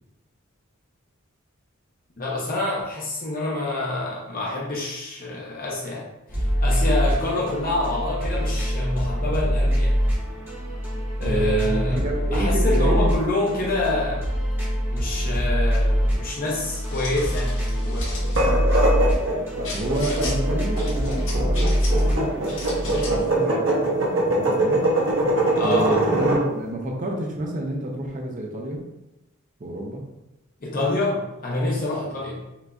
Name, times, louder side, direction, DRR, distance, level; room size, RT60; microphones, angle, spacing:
voice 1, 2.2-10.0 11.2-14.2 14.9-18.2 25.5-26.0 30.6-32.5, left 2 dB, 45° left, -4 dB, 0.8 m, -27 dB
sound 1, 6.3-23.2, equal, 10° right, 1.3 m, -24 dB
voice 2, 11.2-13.2 19.7-24.9 25.6-28.9 29.6-30.0 32.1-32.2, right 1 dB, 40° right, 0 dB, 0.6 m, -29 dB
sound 2, 16.6-18.4 19.6-20.4 20.8-22.1 22.4-23.3, left 2 dB, 70° left, 1.4 m, -37 dB
sound 3, 18.2-26.4, right 1 dB, 70° right, 1.0 m, -22 dB
5.9 x 2.6 x 2.3 m, 0.93 s
head